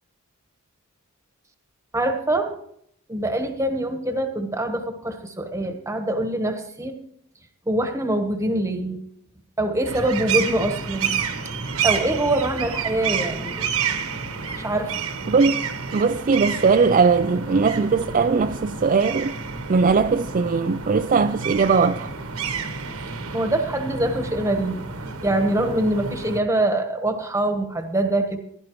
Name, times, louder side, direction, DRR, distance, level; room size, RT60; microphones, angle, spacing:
voice 1, 1.9-2.6 3.1-7.0 7.7-9.0 9.6-11.1 11.8-13.6 14.6-14.9 23.3-28.4, right 1 dB, 15° right, 1.2 m, -24 dB
sound 1, 9.8-26.4, right 6 dB, 70° right, 1.2 m, -29 dB
voice 2, 15.3-15.6 15.9-19.4 19.7-22.1, right 5 dB, 35° right, 0.4 m, -19 dB
16.0 x 11.5 x 3.1 m
head